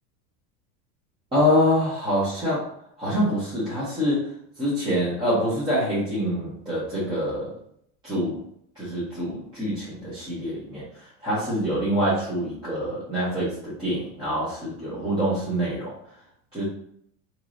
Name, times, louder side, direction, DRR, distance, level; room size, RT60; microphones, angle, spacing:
voice 1, 1.3-2.7 3.0-4.3 4.6-7.6 8.0-8.4 8.7-16.0 16.5-16.6, equal, 15° right, -12 dB, 1.1 m, -25 dB
3.1 x 2.9 x 2.5 m, 0.67 s
supercardioid pair, 160°, 37 cm